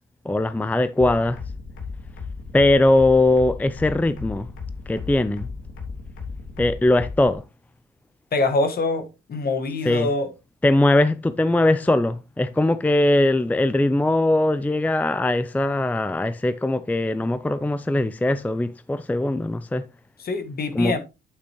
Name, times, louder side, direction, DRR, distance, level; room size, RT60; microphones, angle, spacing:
voice 1, 0.2-1.4 2.5-4.5 4.9-5.5 6.6-7.4 9.8-10.1 10.6-19.9 20.7-21.0, left 2 dB, 10° left, 0.5 m, -20 dB
sound 1, 1.0-7.3, left 4 dB, 80° left, 3.4 m, -35 dB
voice 2, 8.3-10.3 20.2-21.0, left 3 dB, 50° left, 1.7 m, -24 dB
8.7 x 8.2 x 2.9 m
cardioid pair, 90°, 20 cm